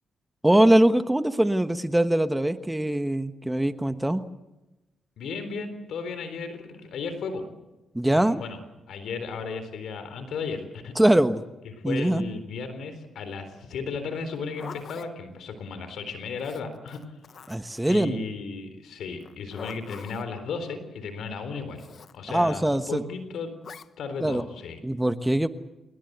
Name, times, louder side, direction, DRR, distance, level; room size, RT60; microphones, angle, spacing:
voice 1, 0.4-4.2 7.9-8.4 10.9-11.4 11.8-12.2 17.5-18.2 22.3-23.0 24.2-24.4 24.8-25.5, right 1 dB, 10° right, 10 dB, 1.3 m, -22 dB
voice 2, 5.2-7.4 8.1-8.6 8.9-10.9 11.9-17.0 17.9-23.5 24.0-24.8, left 4 dB, 75° left, 9 dB, 3.9 m, -35 dB
Zipper (clothing), 14.2-15.1 16.4-17.8 19.2-20.3 21.8-22.2 23.6-23.9, left 6 dB, 60° left, 1.1 m, -44 dB
29.0 x 18.5 x 8.1 m, 1.0 s
cardioid pair, 70°, 0 cm